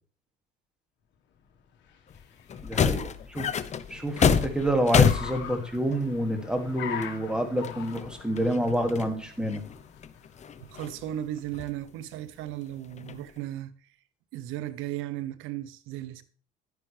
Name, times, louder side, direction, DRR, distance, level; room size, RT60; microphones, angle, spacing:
Car, 1.5-11.7, left 8 dB, 60° left, 1.5 m, -44 dB
sound 1, 2.1-2.2 2.5-6.1 7.0-7.1 7.6-9.1 9.4-11.1 11.5-11.7 12.8-13.4, left 7 dB, 35° left, 0.8 m, -27 dB
voice 1, 2.6-3.1 3.4-3.5 3.9-9.6, equal, 5° right, 2.3 m, -28 dB
voice 2, 10.7-13.7 14.3-16.2, right 12 dB, 75° right, 1.0 m, -36 dB
11.0 x 9.7 x 3.3 m
supercardioid pair, 100°, 21 cm